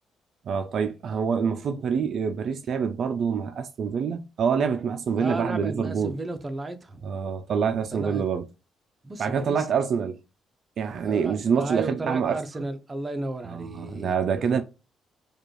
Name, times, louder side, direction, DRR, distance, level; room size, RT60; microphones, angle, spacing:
voice 1, 0.5-6.1 7.0-8.5 9.2-10.2 10.8-12.4 13.5-14.6, right 6 dB, 60° right, 0.3 m, -26 dB
voice 2, 5.2-7.1 7.9-8.3 9.0-9.6 11.1-14.6, right 2 dB, 25° right, 0.6 m, -34 dB
4.7 x 2.3 x 3.1 m
cardioid pair, 90°, 0 cm